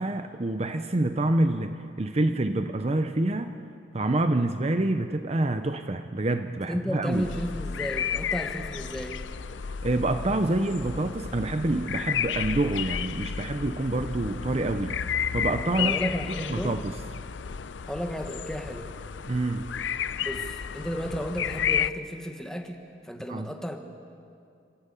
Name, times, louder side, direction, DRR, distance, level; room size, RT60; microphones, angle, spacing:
voice 1, 0.0-3.5 3.9-7.3 9.8-15.0 15.3-16.0 16.5-16.9 19.3-19.7 23.3-23.5, right 2 dB, 35° right, 8 dB, 0.7 m, -27 dB
voice 2, 6.7-9.2 15.8-16.8 17.9-18.9 20.2-23.8, equal, 5° left, 4 dB, 1.4 m, -33 dB
sound 1, 7.1-21.9, left 7 dB, 80° left, 0.5 m, -32 dB
26.5 x 13.5 x 8.4 m, 2.5 s
head